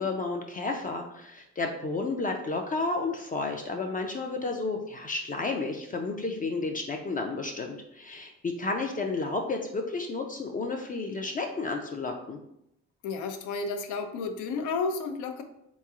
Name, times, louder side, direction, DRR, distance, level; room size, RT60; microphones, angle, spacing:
voice 1, 0.0-12.4, left 3 dB, 30° left, 2 dB, 0.4 m, -32 dB
voice 2, 13.0-15.4, left 4 dB, 85° left, 7 dB, 0.5 m, -32 dB
3.6 x 3.0 x 2.4 m, 0.78 s
cardioid pair, 90°, 30 cm